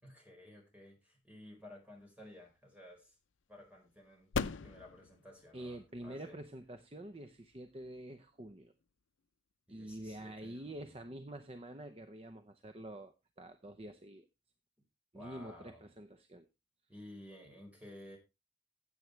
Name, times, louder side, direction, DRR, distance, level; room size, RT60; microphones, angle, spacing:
voice 1, 0.0-3.1 3.5-4.3 4.6-6.4 9.7-10.9 15.1-15.8 16.9-18.2, left 1 dB, 5° right, 0 dB, 4.5 m, -54 dB
sound 1, 1.7-9.0, left 5 dB, 85° left, 0.6 m, -45 dB
voice 2, 5.5-8.7 9.7-14.3 15.1-16.5, right 1 dB, 30° right, 9 dB, 0.7 m, -47 dB
15.5 x 7.9 x 3.2 m, 0.25 s
head